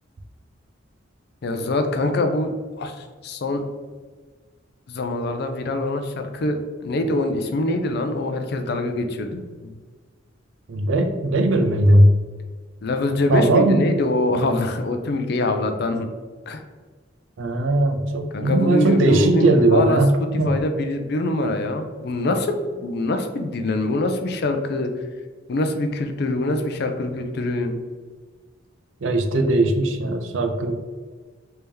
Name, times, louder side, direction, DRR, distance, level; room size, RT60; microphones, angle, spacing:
voice 1, 1.4-3.7 4.9-9.7 12.8-16.1 16.5-16.6 18.3-24.9 25.5-27.8, left 2 dB, 55° left, 6 dB, 0.4 m, -24 dB
voice 2, 10.7-12.2 13.3-13.9 17.4-20.6 29.0-30.9, right 1 dB, 80° right, 6 dB, 0.5 m, -19 dB
3.4 x 2.8 x 3.4 m, 1.5 s
head